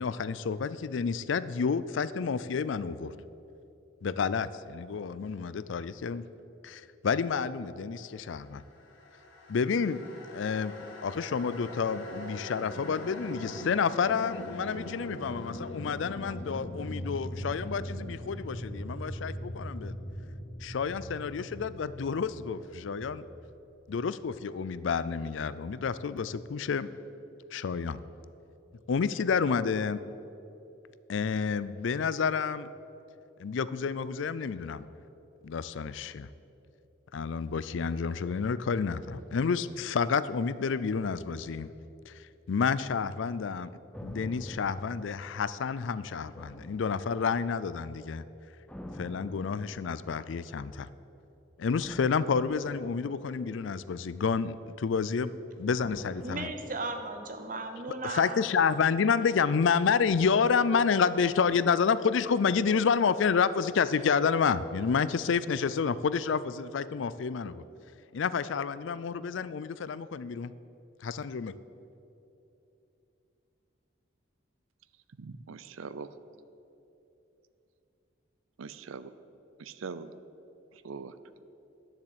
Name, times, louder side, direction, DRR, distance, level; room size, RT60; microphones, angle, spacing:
voice 1, 0.0-3.1 4.0-6.2 6.6-8.6 9.5-10.0 10.3-10.7 11.0-20.0 20.6-23.2 23.9-26.9 27.5-28.0 28.9-30.0 31.1-32.7 33.4-34.8 35.4-36.3 37.1-41.7 42.1-42.2 42.5-43.7 44.0-48.2 49.0-50.9 51.6-55.3 55.6-56.5 58.0-67.6 68.1-70.5 71.0-71.5, left 6 dB, 70° left, 16 dB, 0.4 m, -29 dB
sound 1, 8.8-24.0, left 1 dB, 90° left, 1.9 m, -41 dB
sound 2, 43.9-45.8 46.3-47.6 48.7-50.4 51.8-54.2 55.8-58.0 58.2-58.3, equal, 5° left, 0.5 m, -47 dB
voice 2, 56.2-58.5, right 3 dB, 40° right, 6 dB, 0.9 m, -36 dB
voice 3, 75.2-76.1 78.6-79.1 79.6-80.1 80.8-81.1, right 5 dB, 85° right, 14 dB, 0.5 m, -41 dB
10.0 x 7.3 x 8.0 m, 2.9 s
head